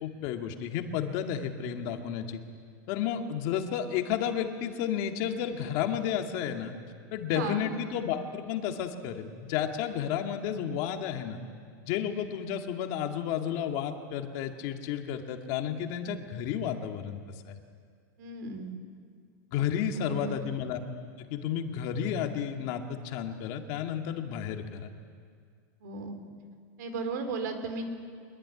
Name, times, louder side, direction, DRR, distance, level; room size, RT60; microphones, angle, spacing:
voice 1, 0.0-2.4 2.9-6.7 7.1-11.4 11.9-17.2 17.5-17.6 19.5-20.8 21.2-24.9, left 9 dB, 45° left, 4 dB, 2.2 m, -32 dB
voice 2, 7.3-7.7 18.2-18.7 19.9-20.5 25.8-26.2 26.8-27.9, right 3 dB, 70° right, 7 dB, 4.5 m, -35 dB
24.0 x 22.5 x 9.8 m, 2.1 s
supercardioid pair, 165°, 10 cm